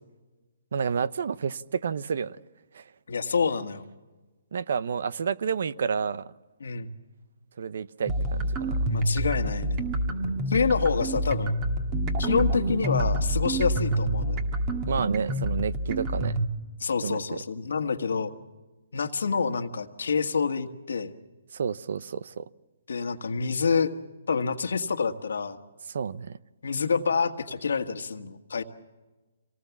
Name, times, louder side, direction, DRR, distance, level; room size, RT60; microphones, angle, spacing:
voice 1, 0.7-2.4 2.7-2.8 4.5-6.3 7.6-8.9 14.9-16.4 17.0-17.4 21.5-22.4 25.9-26.4, right 6 dB, 70° right, 0.7 m, -30 dB
voice 2, 3.1-3.8 6.6-7.0 8.9-9.9 10.5-11.5 12.2-14.4 16.8-18.3 18.9-21.1 22.9-23.9 24.3-25.6 26.6-28.6, left 5 dB, 85° left, 1.7 m, -27 dB
sound 1, 8.1-16.5, right 1 dB, 25° right, 2.2 m, -27 dB
26.5 x 19.0 x 7.2 m
hypercardioid pair, 155°, 0 cm